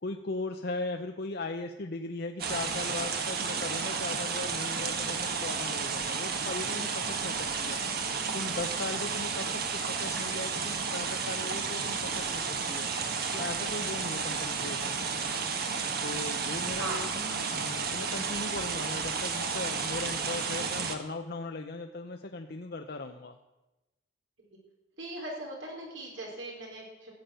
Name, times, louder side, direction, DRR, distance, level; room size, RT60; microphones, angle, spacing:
voice 1, 0.0-7.8 8.3-12.9 13.3-15.0 16.0-23.4, left 2 dB, 55° left, 4 dB, 0.8 m, -38 dB
sound 1, 2.4-20.9, right 5 dB, 55° right, 1.5 m, -32 dB
voice 2, 25.0-27.1, right 1 dB, 85° right, -1 dB, 4.9 m, -39 dB
14.5 x 7.3 x 9.1 m, 1.0 s
head